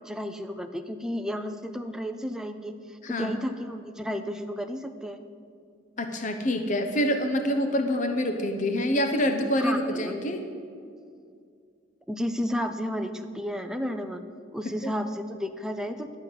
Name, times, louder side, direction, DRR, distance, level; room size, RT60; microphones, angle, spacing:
voice 1, 0.0-5.2 9.6-10.1 12.1-14.2 14.5-16.2, equal, 5° right, 6 dB, 0.5 m, -32 dB
voice 2, 6.0-10.5 14.6-14.9, equal, 40° left, 6 dB, 0.8 m, -26 dB
12.0 x 5.7 x 7.8 m, 2.3 s
head